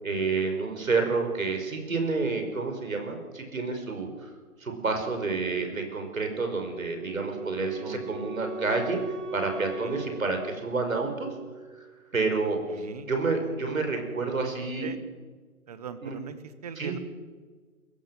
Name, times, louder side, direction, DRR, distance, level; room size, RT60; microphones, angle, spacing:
voice 1, 0.0-4.3 4.6-9.0 9.3-11.3 11.8-11.9 12.1-14.9 16.0-16.2 16.8-16.9, right 4 dB, 60° right, 5 dB, 5.5 m, -29 dB
Wind instrument woodwind instrument, 6.7-11.7, equal, ahead, 3.8 m, -39 dB
voice 2, 12.7-13.1 14.2-14.5 14.8-15.0 15.7-16.3 16.6-17.0, right 7 dB, 25° right, 12 dB, 1.4 m, -40 dB
28.0 x 16.0 x 7.8 m, 1.5 s
figure-of-eight pair, 140°, 45 cm